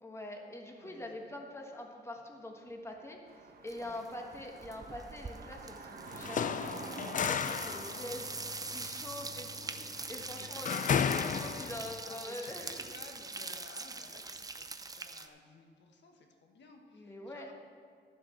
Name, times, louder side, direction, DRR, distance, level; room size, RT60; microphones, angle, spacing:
voice 1, 0.0-8.3 8.7-12.9 16.9-17.5, left 1 dB, 15° left, 1 dB, 1.5 m, -45 dB
voice 2, 0.8-1.4 3.8-4.1 7.9-8.1 10.1-10.6 12.0-17.5, left 3 dB, 65° left, 3 dB, 1.6 m, -56 dB
sound 1, 3.3-10.1, right 4 dB, 50° right, 1.1 m, -49 dB
sound 2, 3.7-4.1 4.3-15.3, right 3 dB, 20° right, 0.6 m, -43 dB
sound 3, 6.1-12.0, left 7 dB, 40° left, 0.4 m, -34 dB
12.5 x 7.6 x 6.0 m, 2.1 s
cardioid pair, 125°, 19 cm